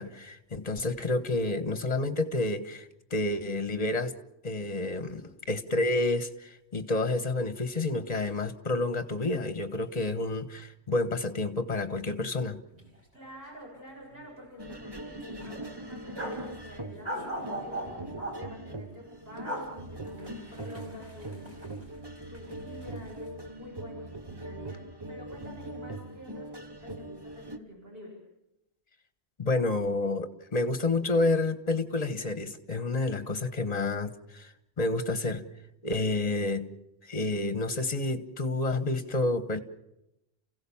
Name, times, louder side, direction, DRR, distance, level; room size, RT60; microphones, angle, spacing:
voice 1, 0.0-4.1 4.4-12.6 29.4-35.4 35.8-36.7 37.0-39.6, left 2 dB, 40° left, 1.4 m, -29 dB
sound 1, 12.7-12.9 13.2-13.3 13.7-14.4 14.7-14.8 15.4-16.5 17.0-18.4 19.2-19.7 20.1-22.0 22.3-23.1, right 1 dB, 40° right, 5.0 m, -39 dB
voice 2, 13.1-18.0 18.4-21.5 22.3-28.2, equal, 65° right, 6.9 m, -48 dB
sound 2, 14.6-27.6, right 1 dB, 25° right, 1.1 m, -42 dB
29.0 x 16.5 x 7.2 m
omnidirectional pair, 1.1 m